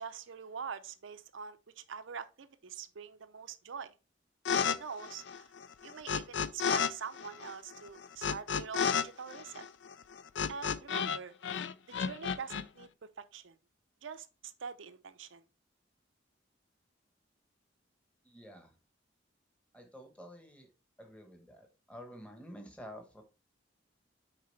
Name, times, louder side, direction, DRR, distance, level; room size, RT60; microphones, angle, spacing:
voice 1, 0.0-3.9 4.6-5.5 5.8-9.6 10.5-11.3 11.9-12.9 13.2-13.6 14.0-15.4, right 6 dB, 85° right, 0.6 m, -44 dB
sound 1, 4.5-4.8 5.0-6.9 7.2-11.2 11.4-12.6, left 6 dB, 70° left, 0.4 m, -32 dB
voice 2, 18.2-18.7 19.7-20.7 21.0-23.2, equal, 5° left, 1.1 m, -50 dB
6.6 x 4.8 x 3.2 m
head